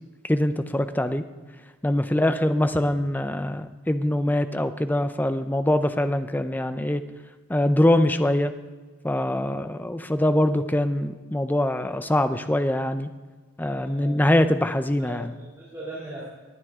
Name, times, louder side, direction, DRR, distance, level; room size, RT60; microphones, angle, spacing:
voice 1, 0.2-1.3 1.8-7.0 7.5-8.5 9.0-13.1 13.6-15.3, left 1 dB, 10° left, 10 dB, 0.5 m, -23 dB
voice 2, 13.6-14.3 15.0-16.3, right 1 dB, 15° right, -7 dB, 2.6 m, -39 dB
19.5 x 9.6 x 3.6 m, 1.4 s
head